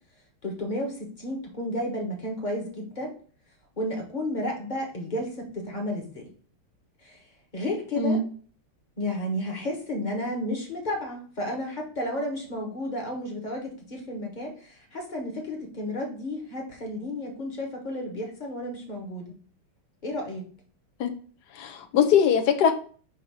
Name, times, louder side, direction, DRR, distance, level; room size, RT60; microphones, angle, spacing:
voice 1, 0.4-3.1 3.8-6.2 7.0-7.2 7.5-8.2 9.0-19.3 20.0-20.5, left 1 dB, 25° left, 0 dB, 1.2 m, -32 dB
voice 2, 21.5-22.7, left 7 dB, 60° left, 5 dB, 1.1 m, -21 dB
6.5 x 2.9 x 5.7 m, 0.43 s
omnidirectional pair, 2.4 m